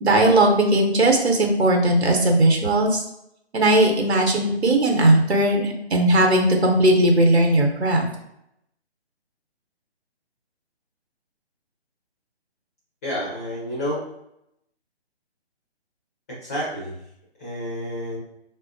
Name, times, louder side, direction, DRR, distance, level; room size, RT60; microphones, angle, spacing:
voice 1, 0.0-3.0 3.5-8.1, right 1 dB, 75° right, 2 dB, 0.9 m, -18 dB
voice 2, 13.0-14.0 16.4-17.0 17.4-18.2, equal, 15° left, -7 dB, 0.6 m, -29 dB
4.4 x 2.0 x 2.6 m, 0.81 s
figure-of-eight pair, 150°, 33 cm